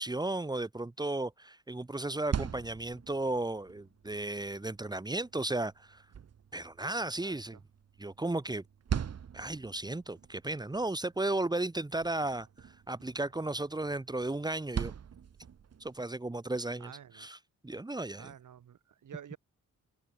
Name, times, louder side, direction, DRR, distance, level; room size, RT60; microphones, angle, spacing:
voice 1, 0.0-6.0 6.5-7.6 8.0-8.6 9.3-14.9 15.8-17.4 17.6-18.3, right 2 dB, 15° right, 2.9 m, -34 dB
sound 1, 2.0-16.0, right 8 dB, 55° right, 2.8 m, -43 dB
voice 2, 7.2-7.6 16.8-17.3 18.1-19.4, right 9 dB, 75° right, 5.4 m, -50 dB
wide cardioid pair, 165°, 31 cm